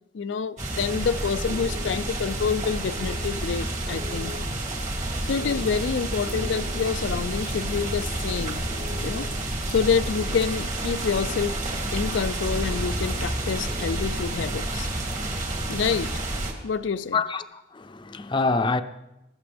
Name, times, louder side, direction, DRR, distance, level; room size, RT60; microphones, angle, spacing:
voice 1, 0.1-4.3 5.2-8.7 9.0-9.3 9.7-11.6 11.9-14.9 15.7-16.1 16.6-17.2, left 6 dB, 85° left, 0.4 m, -27 dB
sound 1, 0.6-16.5, right 1 dB, 40° right, 2.6 m, -29 dB
sound 2, 0.8-14.2, left 2 dB, 75° right, 6.0 m, -43 dB
voice 2, 17.1-18.8, left 3 dB, 25° left, 0.6 m, -26 dB
20.5 x 14.5 x 3.4 m
head